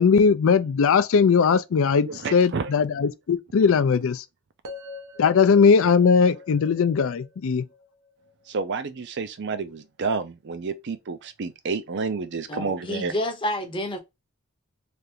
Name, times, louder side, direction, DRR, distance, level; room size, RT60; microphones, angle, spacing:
voice 1, 0.0-4.2 5.2-7.6, left 5 dB, 60° left, 0.4 m, -19 dB
voice 2, 2.0-2.7 8.5-13.1, right 4 dB, 50° right, 0.5 m, -30 dB
sound 1, 4.6-8.8, left 3 dB, 90° right, 0.8 m, -43 dB
voice 3, 12.5-14.0, left 1 dB, 25° left, 0.7 m, -29 dB
3.4 x 2.5 x 2.7 m
head